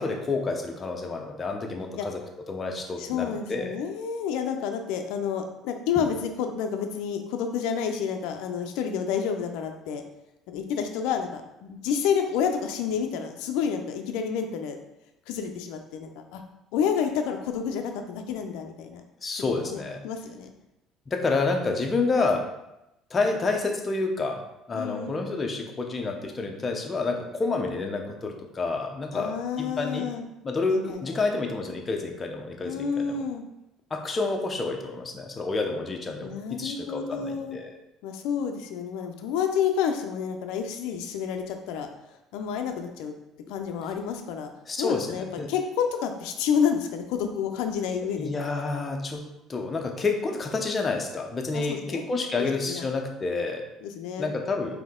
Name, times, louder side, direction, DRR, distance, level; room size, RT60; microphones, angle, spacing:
voice 1, 0.0-2.2 2.5-3.7 19.2-20.0 21.1-22.5 23.1-24.4 24.7-30.1 30.4-33.2 33.9-37.7 44.7-45.5 48.1-49.2 49.5-53.7 54.2-54.8, left 3 dB, 25° left, 2 dB, 0.6 m, -29 dB
voice 2, 3.0-10.0 10.5-14.8 15.3-16.4 16.7-19.0 19.6-20.5 24.7-25.2 29.1-30.3 30.7-31.2 32.6-33.4 36.2-37.6 38.0-41.9 42.3-43.1 43.5-44.5 44.8-48.3 51.5-52.0 52.7-52.9 53.8-54.3, left 7 dB, 85° left, 5 dB, 0.4 m, -29 dB
4.1 x 2.7 x 3.6 m, 0.90 s
cardioid pair, 125°, 0 cm